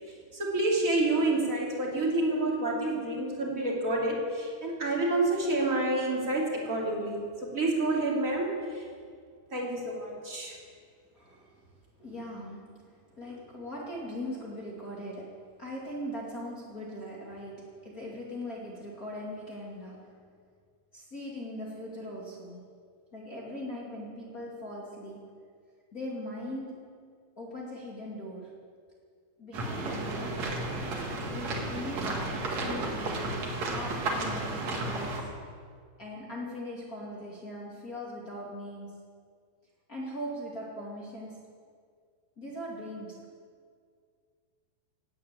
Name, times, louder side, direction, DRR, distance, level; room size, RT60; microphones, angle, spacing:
voice 1, 0.3-8.8 9.5-10.5, right 2 dB, 25° right, -3 dB, 2.2 m, -28 dB
voice 2, 11.1-11.5 12.0-20.1 20.9-22.6 23.1-25.3 25.9-27.1 27.4-28.6 29.4-30.5 31.3-35.4 36.0-39.0 39.9-41.4 42.4-43.2, equal, 30° left, -5 dB, 1.6 m, -40 dB
sound 1, 29.5-35.2, right 2 dB, 50° right, 2.4 m, -33 dB
16.5 x 9.3 x 9.0 m, 2.1 s
omnidirectional pair, 5.2 m